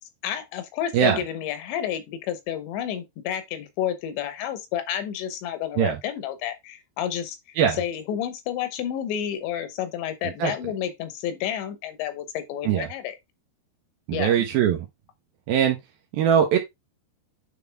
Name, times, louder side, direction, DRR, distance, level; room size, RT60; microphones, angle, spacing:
voice 1, 0.2-7.4 7.7-13.2 14.1-14.4, left 10 dB, 80° left, 3.2 m, -30 dB
voice 2, 14.1-14.9 15.5-15.8 16.1-16.6, right 8 dB, 75° right, 2.3 m, -21 dB
9.6 x 3.8 x 3.4 m
omnidirectional pair, 5.2 m